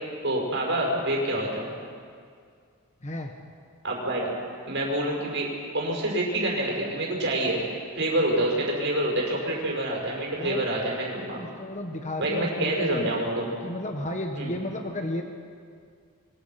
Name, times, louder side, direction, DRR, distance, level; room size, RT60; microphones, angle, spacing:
voice 1, 0.2-1.7 3.8-4.3 4.7-5.5 5.7-7.6 7.9-11.4 12.2-13.5 14.3-14.5, right 1 dB, 55° right, -2 dB, 6.3 m, -27 dB
voice 2, 3.0-3.3 10.4-10.7 11.4-13.2 13.6-15.2, left 1 dB, 30° left, 4 dB, 1.4 m, -33 dB
27.5 x 24.0 x 6.0 m, 2.2 s
head